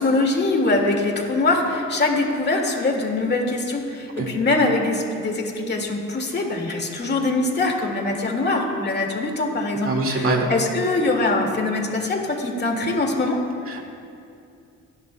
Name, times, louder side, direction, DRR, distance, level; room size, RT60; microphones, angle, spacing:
voice 1, 0.0-13.4, left 2 dB, 35° left, 1 dB, 2.0 m, -23 dB
voice 2, 9.8-10.5 13.7-13.9, right 2 dB, 45° right, 1 dB, 2.0 m, -23 dB
25.0 x 11.0 x 2.2 m, 2.5 s
cardioid pair, 90°, 30 cm